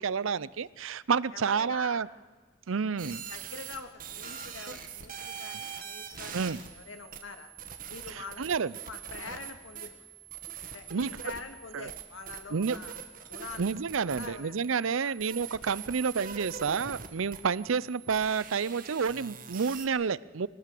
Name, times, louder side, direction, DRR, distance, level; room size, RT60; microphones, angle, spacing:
voice 1, 0.0-2.1 2.7-3.2 6.3-6.6 8.1-8.7 10.9-11.1 11.7-11.9 12.5-12.8 13.6-20.5, right 5 dB, 80° right, 20 dB, 0.6 m, -29 dB
voice 2, 1.3-2.1 3.0-7.5 7.9-10.1 10.7-13.0 13.3-13.7 14.1-14.6 15.0-15.2 15.7-15.8, left 4 dB, 85° left, 7 dB, 2.2 m, -45 dB
sound 1, 3.0-19.9, right 7 dB, 45° right, 1.8 m, -43 dB
22.5 x 18.5 x 7.7 m, 1.3 s
head